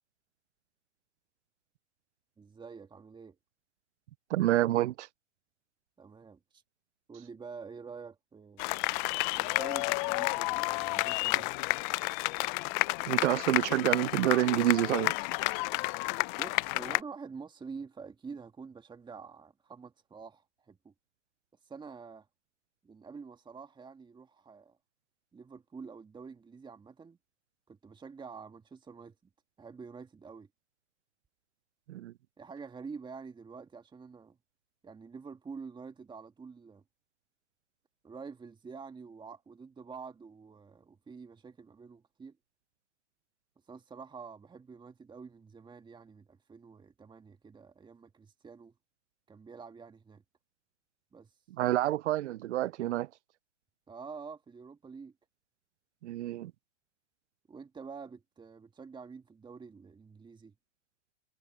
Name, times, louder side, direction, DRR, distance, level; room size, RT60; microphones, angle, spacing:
voice 1, 2.4-3.4 6.0-6.6 7.1-8.6 9.3-11.5 16.4-20.9 21.6-22.3 22.8-24.8 25.3-27.2 27.7-29.2 29.6-30.5 32.4-34.4 34.8-36.8 38.0-42.4 43.7-48.7 49.3-50.2 51.1-51.3 53.9-55.1 57.5-60.5, right 5 dB, 15° right, 2.0 m, -47 dB
voice 2, 4.3-5.1 13.1-15.1 31.9-32.1 51.6-53.1 56.0-56.5, right 14 dB, 75° right, 0.5 m, -28 dB
sound 1, 8.6-17.0, left 28 dB, 40° left, 0.5 m, -31 dB
hypercardioid pair, 115°, 36 cm